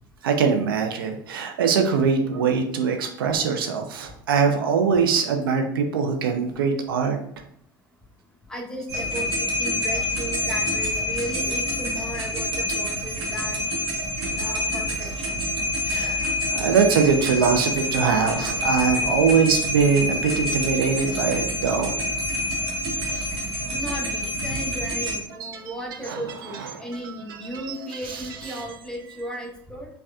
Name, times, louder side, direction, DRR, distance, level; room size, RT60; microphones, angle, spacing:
voice 1, 0.2-7.2 15.9-22.0 23.1-23.3 25.4-25.7 26.1-26.2 26.7-27.1 27.5-27.7 28.1-28.2, right 6 dB, 75° right, 4 dB, 0.5 m, -22 dB
voice 2, 8.5-13.6 14.2-15.1 23.6-29.9, equal, 5° left, -1 dB, 0.9 m, -35 dB
sound 1, 8.9-25.2, left 1 dB, 50° right, 1.1 m, -27 dB
4.6 x 2.4 x 2.3 m, 0.64 s
hypercardioid pair, 75°, 12 cm